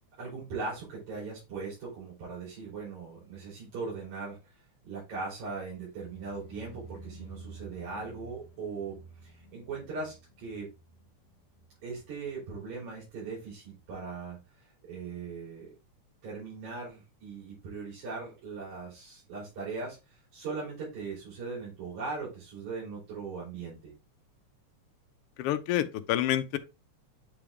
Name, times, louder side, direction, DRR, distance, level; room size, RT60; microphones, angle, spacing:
voice 1, 0.2-4.5 4.8-10.7 11.8-14.4 14.8-15.7 16.2-23.9, right 4 dB, 85° right, 4.9 m, -39 dB
sound 1, 5.8-12.8 13.1-13.6 13.9-14.0, right 2 dB, 70° left, 1.9 m, -51 dB
voice 2, 25.4-26.6, left 12 dB, 85° left, 1.3 m, -28 dB
8.5 x 3.5 x 3.4 m
omnidirectional pair, 3.3 m